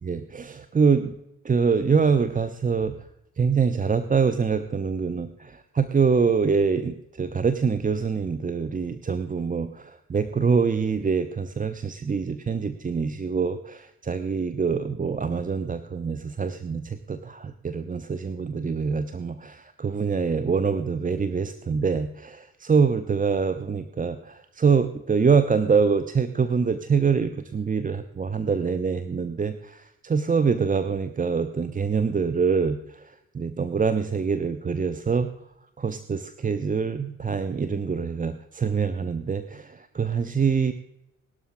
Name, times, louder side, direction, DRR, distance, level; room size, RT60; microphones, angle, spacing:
voice 1, 0.0-1.2 1.4-3.0 3.4-33.0 33.3-35.3 35.8-40.7, right 5 dB, 20° right, 11 dB, 0.8 m, -25 dB
18.0 x 12.5 x 3.8 m, 0.86 s
figure-of-eight pair, 45°, 41 cm